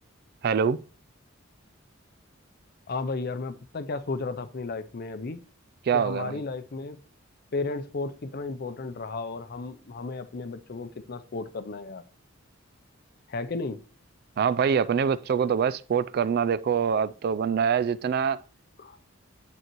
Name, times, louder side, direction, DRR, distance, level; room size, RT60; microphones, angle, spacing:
voice 1, 0.4-0.8 5.9-6.4 14.4-18.4, right 7 dB, 50° right, 0.3 m, -24 dB
voice 2, 2.9-5.4 5.9-7.0 7.5-12.0 13.3-13.8 18.8-19.0, left 3 dB, 50° left, 0.5 m, -34 dB
9.1 x 7.9 x 3.0 m
head